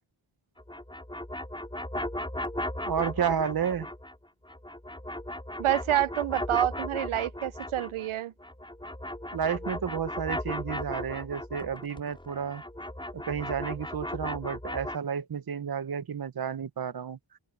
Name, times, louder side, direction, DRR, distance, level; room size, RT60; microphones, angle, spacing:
sound 1, 0.6-4.2 4.4-8.1 8.4-15.0, left 1 dB, 10° left, 6.6 m, -36 dB
voice 1, 2.8-3.9 9.3-12.6 13.1-17.2, right 7 dB, 45° right, 1.0 m, -31 dB
voice 2, 5.6-8.3, right 12 dB, 85° right, 0.7 m, -28 dB
open air
wide cardioid pair, 100°, 49 cm